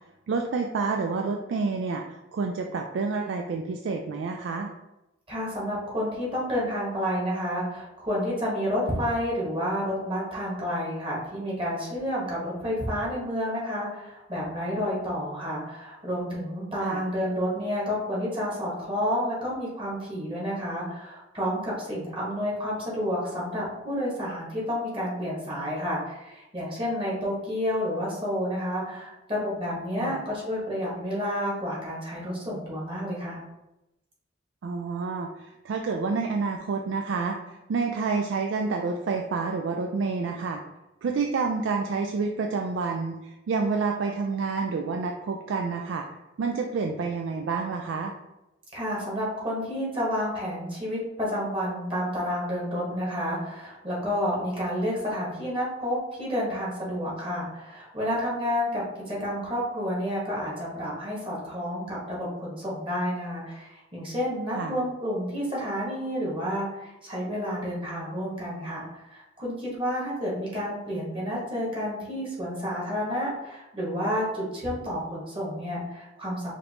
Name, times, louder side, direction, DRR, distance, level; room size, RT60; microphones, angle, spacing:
voice 1, 0.3-4.7 16.8-17.0 30.0-30.2 34.6-40.6 41.0-46.1 46.4-48.1 64.5-64.8, right 4 dB, 80° right, 3 dB, 0.3 m, -29 dB
voice 2, 5.3-33.4 48.7-76.5, equal, 30° right, -5 dB, 1.4 m, -30 dB
5.1 x 2.6 x 2.9 m, 0.94 s
head